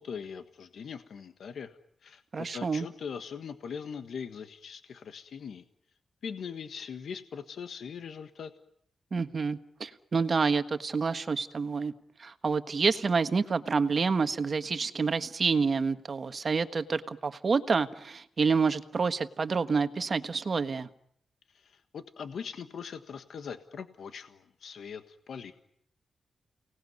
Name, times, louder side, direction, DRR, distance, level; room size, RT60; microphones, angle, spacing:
voice 1, 0.0-1.7 2.0-5.6 6.2-8.5 21.5-25.5, left 6 dB, 75° left, 9 dB, 1.5 m, -41 dB
voice 2, 2.3-2.9 9.1-11.9 12.2-20.9, right 5 dB, 45° right, 10 dB, 1.5 m, -28 dB
30.0 x 19.0 x 9.5 m, 0.72 s
wide cardioid pair, 110°, 0 cm